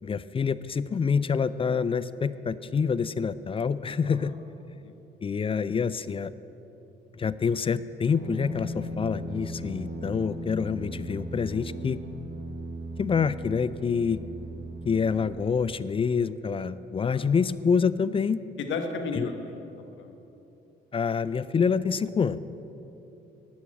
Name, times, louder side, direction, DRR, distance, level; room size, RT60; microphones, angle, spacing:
voice 1, 0.0-4.3 5.2-6.3 7.2-12.0 13.0-14.2 14.8-18.4 19.1-19.3 20.9-22.4, left 6 dB, 30° left, 16 dB, 0.3 m, -27 dB
sound 1, 8.1-15.5, equal, 65° right, 1.8 m, -37 dB
voice 2, 18.6-19.6 19.9-20.1, left 4 dB, 75° left, 5 dB, 1.2 m, -34 dB
11.5 x 6.2 x 8.6 m, 2.9 s
cardioid pair, 90°, 20 cm